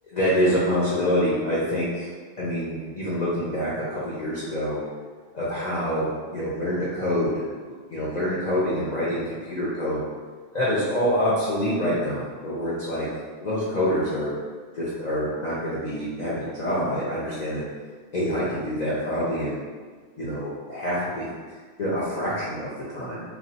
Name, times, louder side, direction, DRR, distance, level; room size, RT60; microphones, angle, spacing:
voice 1, 0.1-2.1 2.4-4.8 5.3-7.4 7.9-10.0 10.5-13.1 13.4-14.3 14.7-17.6 18.1-19.6 20.2-21.3 21.8-23.2, equal, 50° left, -9 dB, 0.6 m, -26 dB
3.1 x 2.5 x 2.7 m, 1.5 s
omnidirectional pair, 1.2 m